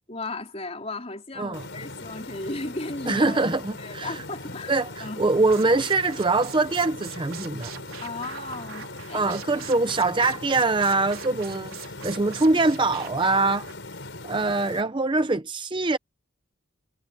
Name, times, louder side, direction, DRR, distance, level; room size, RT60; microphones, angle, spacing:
voice 1, 0.1-3.4 3.8-4.7 5.0-5.3 8.0-9.3, left 2 dB, 30° left, 3.9 m, -35 dB
sound 1, 1.5-14.8, left 2 dB, 60° left, 5.9 m, -40 dB
voice 2, 3.1-4.2 4.7-7.7 9.1-11.7 12.0-13.7 14.2-16.0, right 3 dB, 25° right, 0.6 m, -23 dB
sound 2, 5.4-13.7, right 8 dB, 90° right, 4.3 m, -43 dB
head